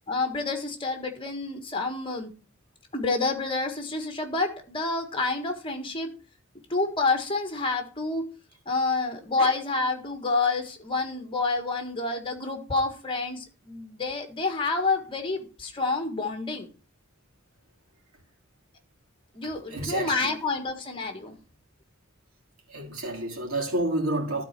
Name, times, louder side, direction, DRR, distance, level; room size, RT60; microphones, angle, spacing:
voice 1, 0.1-2.3 2.9-6.1 6.7-8.3 8.6-16.7 19.3-21.3, left 3 dB, 25° left, 1.5 m, -28 dB
voice 2, 19.4-20.4 22.7-24.4, right 1 dB, 85° right, 2.7 m, -30 dB
12.0 x 4.3 x 5.9 m
head